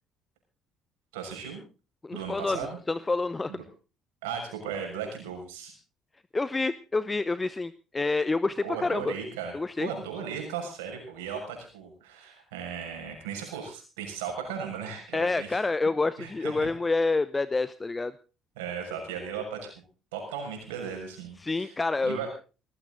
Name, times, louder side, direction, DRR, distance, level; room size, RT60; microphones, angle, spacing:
voice 1, 1.1-1.6 2.1-2.8 3.5-3.6 4.2-5.7 8.6-15.6 16.2-16.7 18.6-19.6 20.1-21.7 22.0-22.3, right 7 dB, 85° right, 3 dB, 6.4 m, -36 dB
voice 2, 2.0-3.6 6.3-9.1 9.5-9.9 15.1-18.1 21.4-22.2, left 3 dB, 25° left, 15 dB, 0.8 m, -28 dB
19.5 x 14.5 x 4.0 m, 0.35 s
hypercardioid pair, 60°, 0 cm